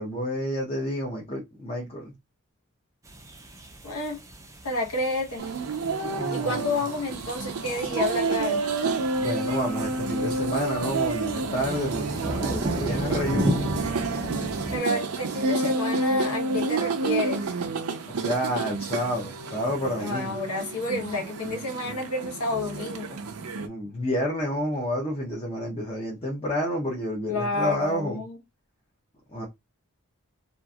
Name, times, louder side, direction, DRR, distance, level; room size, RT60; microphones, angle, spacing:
voice 1, 0.0-2.1 6.0-6.8 9.2-13.7 18.1-20.4 23.6-28.2 29.3-29.5, equal, 25° left, 0.7 m, -29 dB
sound 1, 3.0-14.8, equal, 15° right, 0.4 m, -35 dB
voice 2, 3.8-4.2 4.6-5.4 6.3-8.7 14.7-17.5 20.0-23.2 27.3-28.4, left 2 dB, 75° left, 1.1 m, -30 dB
sound 2, 5.4-23.7, right 3 dB, 75° right, 0.5 m, -29 dB
2.8 x 2.5 x 2.3 m
head